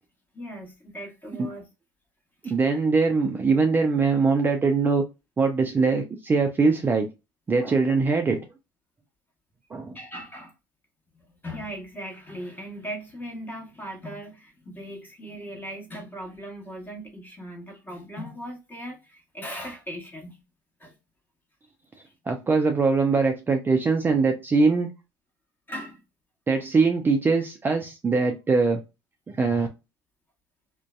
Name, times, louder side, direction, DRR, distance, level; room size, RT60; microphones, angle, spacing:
voice 1, 0.3-1.7 2.4-2.5 9.9-10.5 11.4-20.4 20.8-21.0 25.7-26.0, equal, 20° left, 1.1 m, -38 dB
voice 2, 2.4-5.1 5.4-7.1 7.5-8.4 9.7-10.0 22.3-24.9 26.5-28.8 29.3-29.7, right 4 dB, 20° right, 0.4 m, -22 dB
2.5 x 2.1 x 2.3 m
hypercardioid pair, 80°, 10 cm